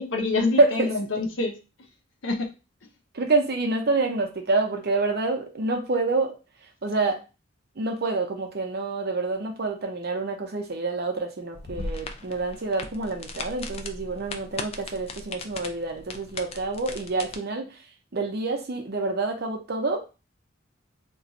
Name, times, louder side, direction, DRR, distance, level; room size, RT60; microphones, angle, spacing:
voice 1, 0.0-1.9 2.2-2.5 2.8-2.9, left 3 dB, 70° left, 0.7 m, -27 dB
voice 2, 0.6-0.9 3.1-6.3 6.8-7.2 7.8-17.8 18.1-20.0, right 3 dB, 55° right, 0.7 m, -27 dB
sound 1, 11.5-17.4, left 3 dB, 30° left, 0.3 m, -38 dB
2.5 x 2.3 x 4.0 m
head